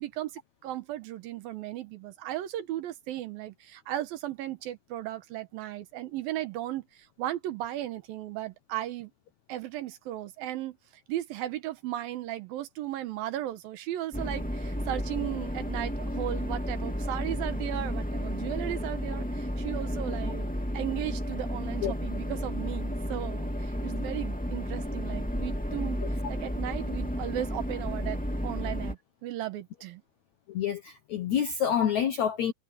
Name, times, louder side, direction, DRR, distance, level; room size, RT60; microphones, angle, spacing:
voice 1, 0.0-9.1 9.5-10.8 11.1-30.0, right 13 dB, 70° right, 2.5 m, -36 dB
sound 1, 14.1-28.9, equal, 10° left, 0.5 m, -32 dB
voice 2, 30.5-32.5, left 8 dB, 80° left, 1.6 m, -27 dB
omnidirectional pair, 4.9 m